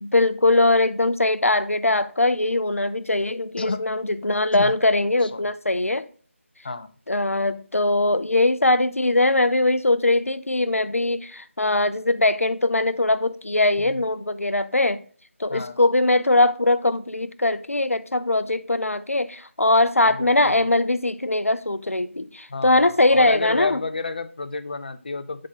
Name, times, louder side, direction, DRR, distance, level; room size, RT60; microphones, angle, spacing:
voice 1, 0.0-6.1 7.1-15.0 15.4-23.8, left 2 dB, 85° left, 0.6 m, -21 dB
voice 2, 3.6-3.9 4.5-4.7 5.2-5.5 6.6-6.9 13.8-14.1 15.5-15.8 20.0-20.6 22.5-25.5, left 4 dB, 40° left, 0.5 m, -31 dB
9.5 x 3.7 x 3.9 m
figure-of-eight pair, 160°, 7 cm